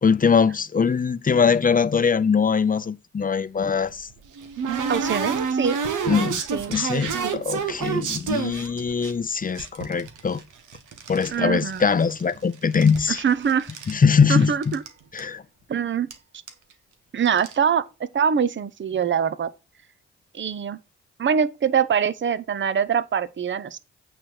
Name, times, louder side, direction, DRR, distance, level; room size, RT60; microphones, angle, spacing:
voice 1, 0.0-4.1 6.1-6.4 6.7-10.4 11.1-13.2 13.9-14.7 15.1-15.4, left 6 dB, 25° left, 0.6 m, -22 dB
sound 1, 3.6-9.1 9.6-11.3 11.6-12.4 12.6-14.0 14.3-14.4 14.6-14.9 15.2-15.3 16.1-16.2 16.5-16.7 17.3-17.5, right 6 dB, 75° right, 1.1 m, -29 dB
voice 2, 4.9-5.8 6.5-6.7 7.2-7.4 11.3-11.9 13.1-13.7 14.3-14.8 15.7-16.1 17.1-17.8 18.1-19.5 20.3-20.8 21.2-23.8, right 7 dB, 40° right, 0.7 m, -23 dB
8.6 x 3.3 x 6.0 m
hypercardioid pair, 40°, 31 cm